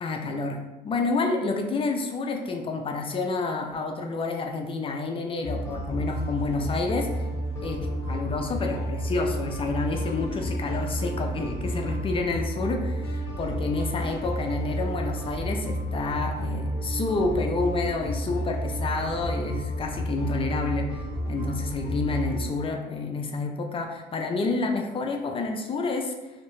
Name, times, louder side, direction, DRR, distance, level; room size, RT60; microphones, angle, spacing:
voice 1, 0.0-7.3 7.6-26.3, left 3 dB, 35° left, 3 dB, 0.3 m, -29 dB
sound 1, 5.4-22.5, equal, 15° left, 0.9 m, -31 dB
2.7 x 2.1 x 3.0 m, 1.1 s
cardioid pair, 110°, 17 cm